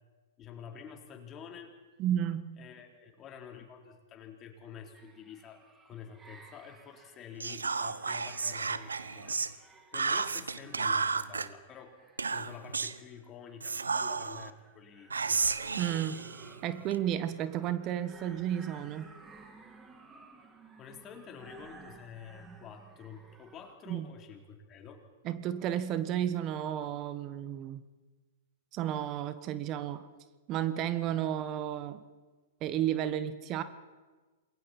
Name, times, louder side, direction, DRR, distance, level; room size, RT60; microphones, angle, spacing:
voice 1, 0.4-1.8 2.6-9.4 9.9-12.0 12.3-15.4 20.8-25.0, left 7 dB, 30° left, 2 dB, 3.7 m, -49 dB
voice 2, 2.0-2.6 15.8-16.3 16.6-19.1 23.9-24.1 25.2-27.8 28.7-30.1 30.5-32.0 32.6-33.6, right 11 dB, 35° right, 12 dB, 1.4 m, -32 dB
sound 1, 4.9-23.7, right 3 dB, 15° right, 3.1 m, -56 dB
Whispering, 7.4-9.5 9.9-11.5 12.2-13.0 13.6-14.5 15.1-17.0, right 4 dB, 85° right, 0.9 m, -32 dB
28.0 x 22.0 x 4.4 m, 1.3 s
hypercardioid pair, 110°, 0 cm